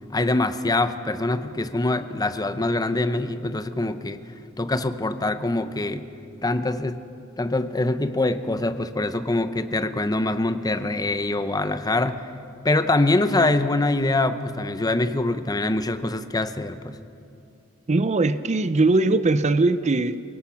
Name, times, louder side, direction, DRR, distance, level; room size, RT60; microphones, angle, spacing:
voice 1, 0.1-4.2 4.6-6.1 6.4-7.0 7.4-12.2 12.6-16.9, left 2 dB, 15° left, 0.7 m, -24 dB
voice 2, 17.9-20.2, right 2 dB, 30° right, 0.5 m, -20 dB
28.0 x 17.5 x 5.8 m
head